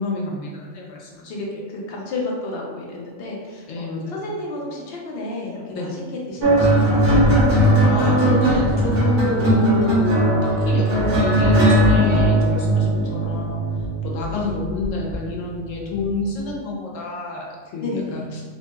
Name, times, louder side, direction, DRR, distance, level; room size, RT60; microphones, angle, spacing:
voice 1, 0.0-1.6 3.7-4.3 5.7-5.9 7.8-13.6 14.0-18.4, left 3 dB, 90° left, -2 dB, 1.0 m, -28 dB
voice 2, 1.3-6.0 6.3-7.2 9.2-9.5 12.0-12.2 14.3-14.5 17.8-18.3, left 2 dB, 60° left, -2 dB, 0.8 m, -31 dB
sound 1, 6.4-15.1 16.1-16.4, right 1 dB, 45° right, 1.0 m, -18 dB
3.0 x 2.7 x 2.2 m, 1.5 s
omnidirectional pair, 1.3 m